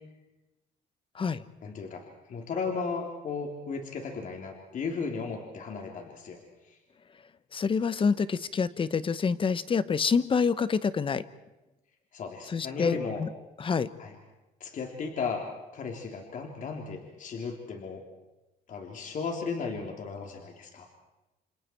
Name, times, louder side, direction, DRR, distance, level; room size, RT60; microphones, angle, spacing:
voice 1, 1.6-2.0 2.3-6.4 12.1-13.2 14.0-14.2 14.6-15.4 15.7-18.0 18.7-20.9, left 5 dB, 50° left, 2 dB, 3.4 m, -35 dB
voice 2, 7.5-11.2 12.5-13.3 13.6-13.9, left 5 dB, 30° left, 15 dB, 1.1 m, -27 dB
28.5 x 27.5 x 4.6 m, 1.0 s
cardioid pair, 110°, 17 cm